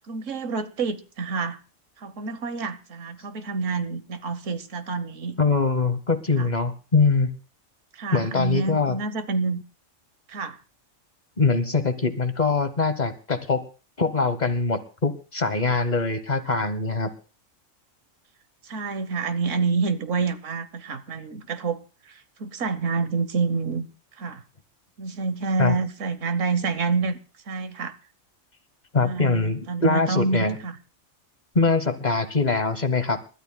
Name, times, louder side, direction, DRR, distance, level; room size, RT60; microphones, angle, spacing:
voice 1, 0.0-1.6 2.0-5.4 6.4-6.5 7.9-9.6 10.3-10.6 18.6-21.8 22.1-23.9 24.2-24.4 25.0-27.2 27.5-27.9 29.0-30.8, right 4 dB, 70° right, 1.4 m, -28 dB
voice 2, 5.4-7.3 8.1-9.0 11.4-13.6 14.0-17.1 25.6-25.8 28.9-30.6 31.5-33.2, left 4 dB, 35° left, 1.1 m, -23 dB
29.5 x 13.0 x 2.2 m
omnidirectional pair, 1.4 m